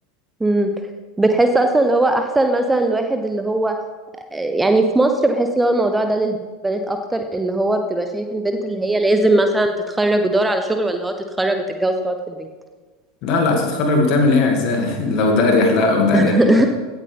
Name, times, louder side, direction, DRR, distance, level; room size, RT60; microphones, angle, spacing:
voice 1, 0.4-0.7 1.2-3.7 4.3-6.4 6.6-12.5 16.1-16.7, right 2 dB, 10° right, 6 dB, 0.8 m, -19 dB
voice 2, 13.2-16.6, left 3 dB, 45° left, 2 dB, 2.3 m, -18 dB
16.5 x 8.2 x 3.5 m, 1.4 s
figure-of-eight pair, 80°, 0 cm